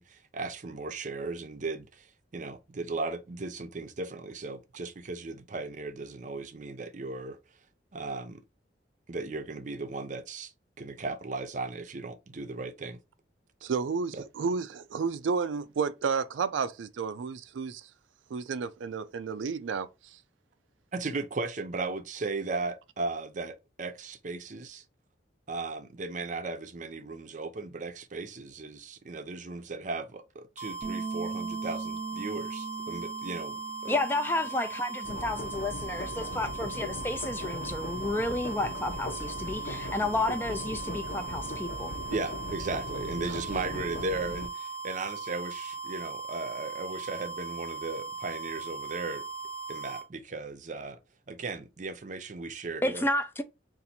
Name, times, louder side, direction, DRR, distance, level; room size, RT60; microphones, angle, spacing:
voice 1, 0.0-7.4 7.9-8.4 9.1-13.0 14.1-14.2 20.9-24.8 25.5-34.0 42.1-49.2 49.7-51.0 51.3-53.1, right 3 dB, 40° right, 0.6 m, -36 dB
voice 2, 13.6-17.9 18.3-19.9, right 5 dB, 85° right, 0.4 m, -31 dB
sound 1, 30.6-50.1, right 5 dB, 80° left, 1.2 m, -39 dB
Bass guitar, 30.8-37.1, right 4 dB, 20° right, 0.9 m, -41 dB
voice 3, 33.9-41.9 52.8-53.4, left 2 dB, 10° left, 0.4 m, -31 dB
sound 2, 35.0-44.5, left 2 dB, 45° left, 0.7 m, -39 dB
4.0 x 2.6 x 4.2 m
head